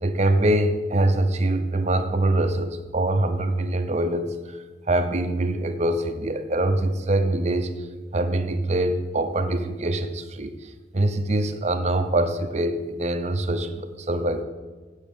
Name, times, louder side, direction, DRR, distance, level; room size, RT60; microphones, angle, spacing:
voice 1, 0.0-4.6 4.9-7.7 8.1-14.4, right 1 dB, 40° right, 7 dB, 0.7 m, -24 dB
8.3 x 7.4 x 6.9 m, 1.3 s
head